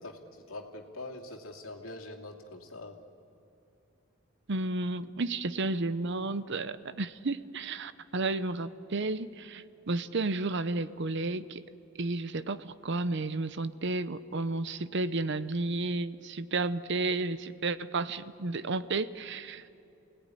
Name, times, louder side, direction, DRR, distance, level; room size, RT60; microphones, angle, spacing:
voice 1, 0.0-3.0, left 2 dB, 80° left, 1 dB, 2.7 m, -44 dB
voice 2, 4.5-11.6 12.0-19.6, right 3 dB, 55° right, 14 dB, 0.8 m, -32 dB
28.5 x 18.5 x 9.9 m, 2.7 s
head